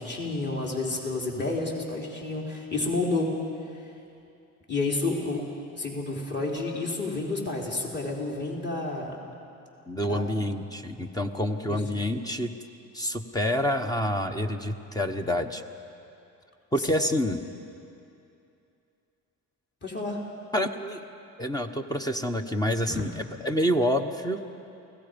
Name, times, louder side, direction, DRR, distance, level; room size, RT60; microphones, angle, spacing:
voice 1, 0.0-3.3 4.7-5.4 5.8-9.2 10.1-10.3 11.7-11.8 19.8-20.2 22.9-23.0, left 3 dB, 30° left, -2 dB, 3.8 m, -30 dB
voice 2, 1.4-1.7 9.9-12.6 12.9-15.6 16.7-17.4 20.5-21.0 21.4-24.4, equal, 10° left, 6 dB, 1.1 m, -28 dB
28.5 x 17.5 x 5.2 m, 2.7 s
supercardioid pair, 85°, 37 cm